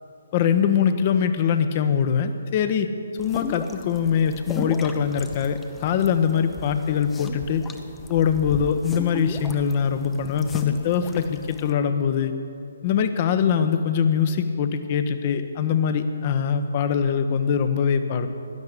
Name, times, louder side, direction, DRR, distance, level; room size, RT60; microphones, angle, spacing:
voice 1, 0.3-2.9 3.2-7.6 8.1-12.3 12.8-18.3, left 7 dB, 35° left, 9 dB, 1.0 m, -22 dB
sound 1, 3.2-11.7, left 4 dB, 10° left, 0.8 m, -37 dB
16.0 x 12.0 x 6.7 m, 2.5 s
figure-of-eight pair, 135°, 0 cm